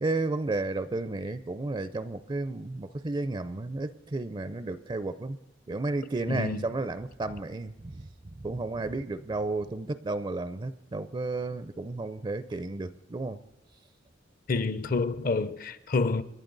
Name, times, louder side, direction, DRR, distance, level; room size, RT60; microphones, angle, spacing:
voice 1, 0.0-5.4 5.7-8.0 8.4-13.4, right 2 dB, 25° right, 0.5 m, -32 dB
voice 2, 6.3-6.7 14.5-16.2, left 3 dB, 45° left, 0.6 m, -28 dB
27.0 x 11.5 x 3.9 m
head